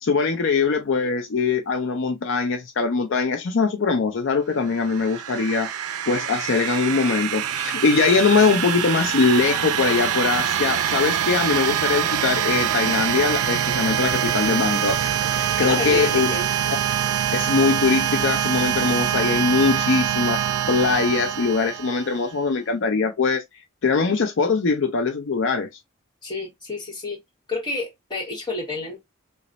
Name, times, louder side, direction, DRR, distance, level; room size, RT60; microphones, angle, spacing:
voice 1, 0.0-5.7 6.1-15.0 15.3-16.4 17.3-23.4 23.8-25.7, left 4 dB, 65° left, 0.5 m, -22 dB
sound 1, 4.7-22.3, right 9 dB, 85° right, 0.4 m, -24 dB
voice 2, 15.6-16.5 26.2-27.2 27.5-29.0, left 3 dB, 20° left, 1.2 m, -30 dB
3.1 x 2.0 x 3.9 m
head